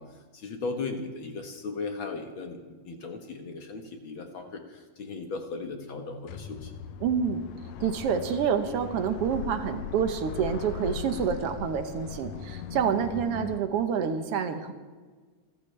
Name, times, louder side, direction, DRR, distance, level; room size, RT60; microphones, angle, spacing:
voice 1, 0.0-6.7, left 3 dB, 55° left, 4 dB, 1.4 m, -37 dB
sound 1, 6.3-13.6, left 8 dB, 80° left, 1.6 m, -39 dB
voice 2, 7.0-7.5 7.8-14.7, right 7 dB, 70° right, 8 dB, 1.4 m, -28 dB
27.5 x 13.5 x 3.3 m, 1.4 s
omnidirectional pair, 3.9 m